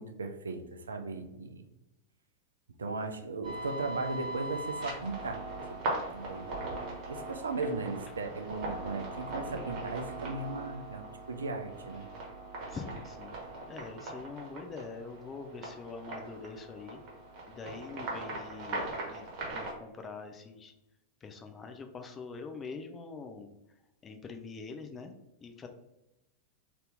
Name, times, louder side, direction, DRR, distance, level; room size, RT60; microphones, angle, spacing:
voice 1, 0.0-1.6 2.8-5.4 6.1-6.5 7.1-12.1, right 3 dB, 70° right, 7 dB, 0.4 m, -37 dB
sound 1, 3.4-19.7, right 2 dB, 40° right, 1.0 m, -40 dB
voice 2, 12.7-13.4 13.7-17.0 17.5-20.7 21.2-23.5 24.0-25.1 25.4-25.7, left 4 dB, 20° left, 6 dB, 0.4 m, -44 dB
2.7 x 2.5 x 3.4 m, 0.91 s
figure-of-eight pair, 90°, 0 cm